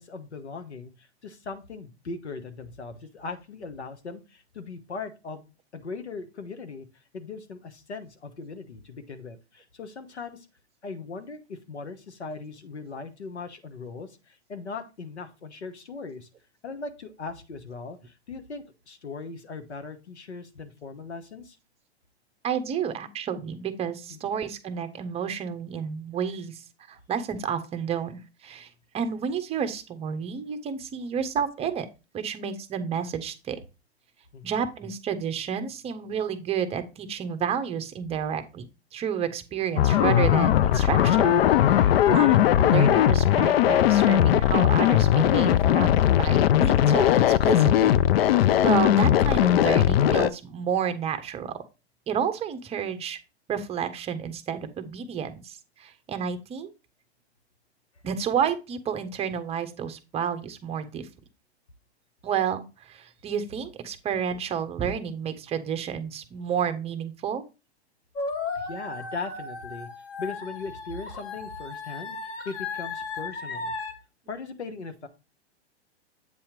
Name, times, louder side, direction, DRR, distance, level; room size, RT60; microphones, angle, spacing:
voice 1, 0.0-5.4 5.7-6.9 7.1-10.5 10.8-16.3 16.6-21.6 24.1-24.4 34.3-34.5 68.5-69.9 70.2-73.7 74.3-75.1, left 4 dB, 85° left, 9 dB, 1.1 m, -39 dB
voice 2, 22.4-26.6 26.9-28.7 28.9-31.9 32.1-33.6 34.4-38.7 38.9-41.4 41.6-45.9 46.2-47.1 47.4-48.0 48.6-51.6 52.1-53.2 53.5-56.7 58.0-61.1 62.2-67.4 74.3-74.4, right 7 dB, 20° right, 10 dB, 0.7 m, -30 dB
sound 1, 39.8-50.3, left 11 dB, 60° left, 0.5 m, -19 dB
sound 2, 68.2-73.9, left 4 dB, 35° left, 1.5 m, -35 dB
8.1 x 2.8 x 5.1 m, 0.28 s
hypercardioid pair, 115°, 33 cm